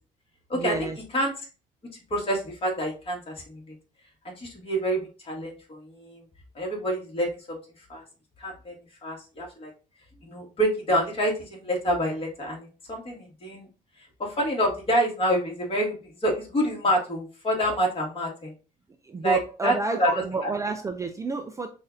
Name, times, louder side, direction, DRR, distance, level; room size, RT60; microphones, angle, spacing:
voice 1, 0.5-1.0 19.0-21.7, right 3 dB, 20° right, 6 dB, 0.4 m, -30 dB
voice 2, 2.1-3.6 4.4-6.2 6.6-7.6 7.9-8.0 8.4-8.7 9.0-9.7 10.2-13.6 14.2-15.9 16.2-18.5 19.2-19.4 19.6-19.7 20.0-20.5, equal, 35° left, -1 dB, 1.8 m, -27 dB
6.0 x 2.6 x 2.6 m, 0.34 s
cardioid pair, 110°, 17 cm